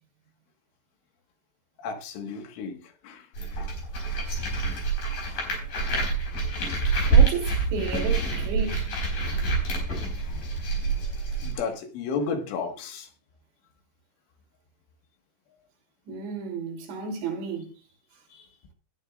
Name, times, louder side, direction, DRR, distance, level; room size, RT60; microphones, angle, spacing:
voice 1, 1.8-3.3 3.5-3.7 4.1-4.3 4.7-4.8 5.3-5.5 5.9-6.1 6.6-6.8 10.2-10.4 11.4-13.1 18.3-18.5, left 5 dB, 85° left, 4.2 m, -34 dB
sound 1, 3.3-11.5, right 4 dB, 50° left, 5.8 m, -26 dB
voice 2, 4.3-4.6 7.1-8.9 16.1-17.7, right 4 dB, 70° right, 5.3 m, -33 dB
19.5 x 8.8 x 2.5 m
omnidirectional pair, 5.4 m